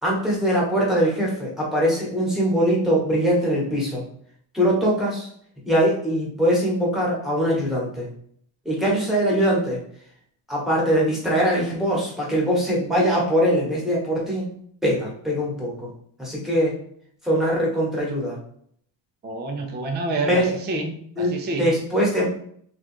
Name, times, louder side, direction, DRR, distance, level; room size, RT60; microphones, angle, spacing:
voice 1, 0.0-4.0 4.5-5.3 5.7-8.1 8.6-9.8 10.5-14.5 14.8-15.9 16.2-16.7 17.2-18.4 20.2-20.5 21.2-22.2, equal, ahead, -4 dB, 1.1 m, -22 dB
voice 2, 19.2-21.7, right 2 dB, 25° right, 3 dB, 0.3 m, -28 dB
3.7 x 2.4 x 4.4 m, 0.63 s
cardioid pair, 180°, 49 cm